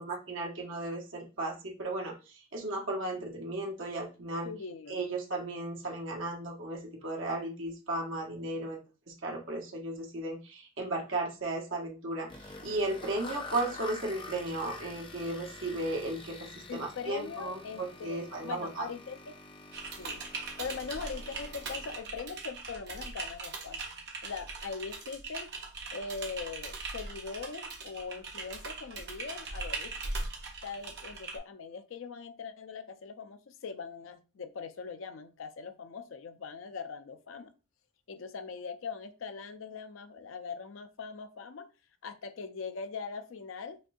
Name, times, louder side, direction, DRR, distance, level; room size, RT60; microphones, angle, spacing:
voice 1, 0.0-4.5 4.9-8.8 9.1-18.9, right 2 dB, 80° right, 0 dB, 1.1 m, -35 dB
voice 2, 4.4-5.0 16.7-19.4 20.0-20.3 20.6-23.8 24.2-25.5 25.9-30.0 30.6-37.5 38.1-41.7 42.0-43.8, left 5 dB, 85° left, 10 dB, 0.5 m, -41 dB
sound 1, 12.3-22.0, left 2 dB, 25° left, 0.4 m, -47 dB
Typing, 19.7-31.4, right 3 dB, 55° right, 0.9 m, -40 dB
5.2 x 2.3 x 2.6 m, 0.31 s
head